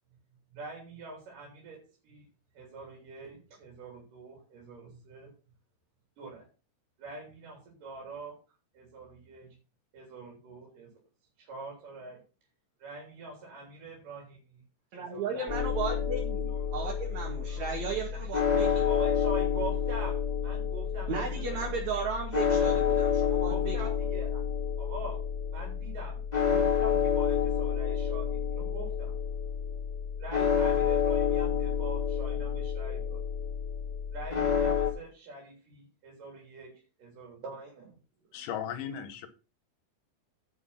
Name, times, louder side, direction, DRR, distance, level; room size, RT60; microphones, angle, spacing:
voice 1, 0.5-2.3 2.5-5.3 6.2-6.5 7.0-8.4 8.7-9.6 9.9-10.9 11.4-12.2 12.8-14.6 15.0-15.7 16.5-17.0 17.5-18.6 18.8-21.8 23.4-24.4 24.8-29.2 30.2-33.2 34.1-38.0 38.8-39.0, right 3 dB, 85° right, 5.0 m, -44 dB
voice 2, 14.9-18.9 21.1-23.8, right 5 dB, 60° right, 3.2 m, -35 dB
sound 1, 15.5-34.9, left 7 dB, 15° left, 3.0 m, -29 dB
voice 3, 38.3-39.3, left 9 dB, 80° left, 2.7 m, -36 dB
10.5 x 6.2 x 5.7 m
omnidirectional pair, 3.7 m